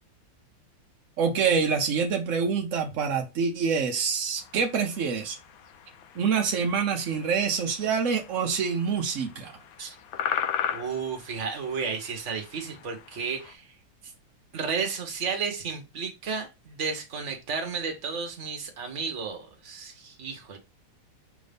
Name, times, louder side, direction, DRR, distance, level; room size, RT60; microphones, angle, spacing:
voice 1, 1.2-5.4 6.2-9.5, right 6 dB, 75° right, 3 dB, 0.7 m, -26 dB
sound 1, 4.4-13.5, left 9 dB, 75° left, 1.3 m, -38 dB
voice 2, 10.7-13.6 14.5-20.6, right 5 dB, 45° right, 4 dB, 1.1 m, -33 dB
5.9 x 2.7 x 3.4 m, 0.25 s
omnidirectional pair, 2.2 m